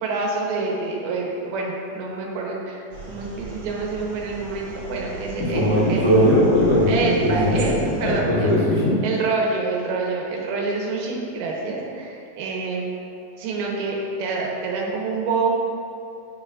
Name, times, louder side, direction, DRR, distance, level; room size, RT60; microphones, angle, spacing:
voice 1, 0.0-6.2 6.9-8.5 9.0-12.9 13.4-15.5, right 3 dB, 80° right, -2 dB, 2.8 m, -27 dB
sound 1, 2.9-8.2, right 3 dB, 60° right, 2.0 m, -37 dB
voice 2, 5.5-7.6 8.0-8.9, equal, 45° left, -12 dB, 1.2 m, -19 dB
10.0 x 5.8 x 2.4 m, 2.6 s
omnidirectional pair, 4.5 m